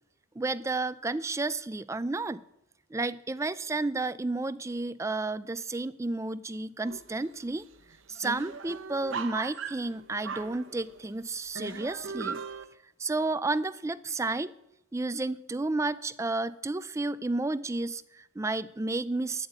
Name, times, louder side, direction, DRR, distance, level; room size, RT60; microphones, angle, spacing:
voice 1, 0.4-2.4 2.9-7.7 8.1-12.4 13.0-14.5 14.9-19.5, right 2 dB, 15° right, 15 dB, 0.3 m, -31 dB
sound 1, 6.8-7.3 7.6-7.7 7.9-11.1 11.5-12.6, right 5 dB, 70° right, 0.9 m, -38 dB
9.7 x 7.8 x 8.1 m, 0.84 s
head